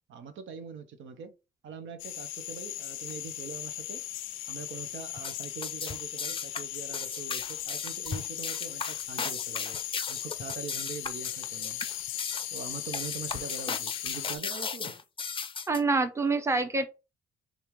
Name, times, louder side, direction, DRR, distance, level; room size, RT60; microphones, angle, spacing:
voice 1, 0.1-1.3 1.6-4.0 4.5-9.8 10.1-11.8 12.5-15.0, right 6 dB, 75° right, 0.7 m, -43 dB
sound 1, 2.0-14.4, left 14 dB, 85° left, 0.4 m, -38 dB
sound 2, 5.2-15.8, left 5 dB, 25° left, 0.5 m, -36 dB
voice 2, 15.7-16.9, right 3 dB, 15° right, 0.7 m, -26 dB
3.3 x 2.5 x 4.4 m
cardioid pair, 90°, 20 cm